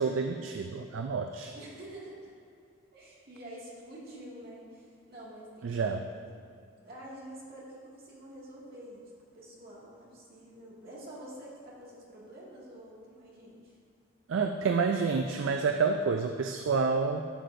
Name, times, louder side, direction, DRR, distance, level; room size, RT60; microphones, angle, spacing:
voice 1, 0.0-1.5 5.6-6.0 14.3-17.3, right 4 dB, 65° right, 5 dB, 0.3 m, -29 dB
voice 2, 1.5-2.3 2.9-6.3 6.8-13.8, right 1 dB, 50° right, -6 dB, 2.0 m, -48 dB
11.5 x 6.7 x 2.6 m, 2.3 s
head